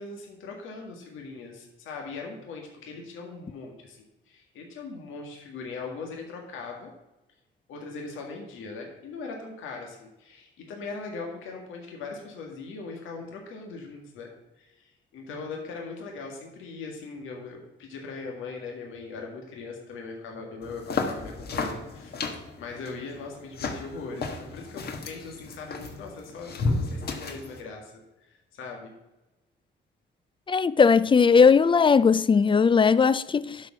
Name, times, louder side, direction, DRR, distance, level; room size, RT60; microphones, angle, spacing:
voice 1, 0.0-6.9 7.7-14.3 14.6-22.1 22.6-28.9, left 4 dB, 80° left, 1.9 m, -40 dB
sound 1, 20.6-27.6, left 3 dB, 55° left, 1.5 m, -33 dB
voice 2, 30.5-33.6, left 5 dB, 25° left, 0.4 m, -19 dB
11.5 x 4.7 x 6.1 m
cardioid pair, 90°, 20 cm